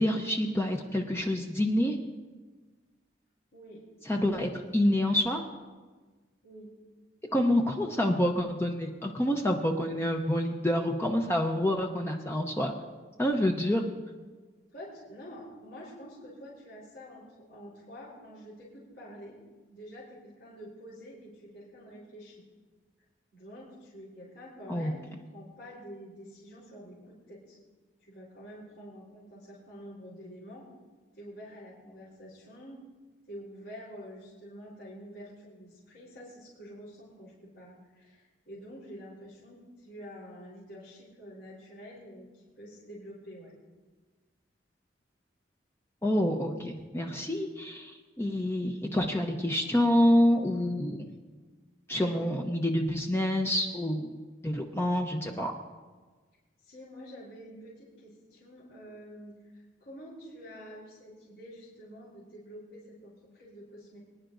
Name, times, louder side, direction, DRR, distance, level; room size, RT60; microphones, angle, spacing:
voice 1, 0.0-2.0 4.1-5.4 7.3-12.7 13.2-13.9 24.7-24.9 46.0-51.1 51.9-54.1 54.4-55.5, left 1 dB, 15° left, 2 dB, 0.6 m, -27 dB
voice 2, 14.7-19.4 19.7-22.4 23.3-25.0 25.3-27.6 28.0-30.7 31.1-32.8 33.3-43.5 48.2-48.5 51.9-52.3 56.6-64.0, equal, 65° left, -8 dB, 3.8 m, -48 dB
23.5 x 10.5 x 2.6 m, 1.4 s
head